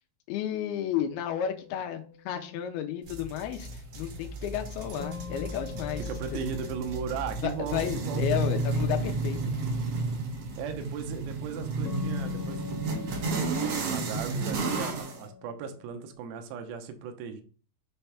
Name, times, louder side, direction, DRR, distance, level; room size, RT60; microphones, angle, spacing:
voice 1, 0.3-6.0 6.3-6.4 7.4-9.4, left 10 dB, 85° left, 5 dB, 2.6 m, -32 dB
sound 1, 1.1-2.5 5.0-9.4 11.9-16.1, left 8 dB, 65° left, 1.9 m, -43 dB
sound 2, 3.1-15.2, right 3 dB, 60° right, 1.7 m, -32 dB
voice 2, 6.0-8.2 10.6-17.4, right 7 dB, 80° right, 6 dB, 2.5 m, -37 dB
6.5 x 3.4 x 5.7 m, 0.40 s
omnidirectional pair, 4.6 m